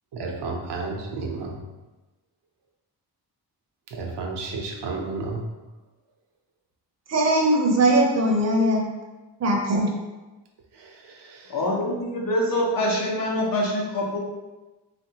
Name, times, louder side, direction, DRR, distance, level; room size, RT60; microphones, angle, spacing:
voice 1, 0.1-1.6 3.9-5.5 10.7-11.6, right 3 dB, 90° right, 1 dB, 0.7 m, -32 dB
voice 2, 7.1-8.8 9.4-9.9, right 1 dB, 40° right, 0 dB, 0.5 m, -20 dB
voice 3, 11.5-14.2, left 1 dB, 55° left, -2 dB, 0.7 m, -25 dB
3.3 x 2.5 x 2.8 m, 1.1 s
wide cardioid pair, 150°, 40 cm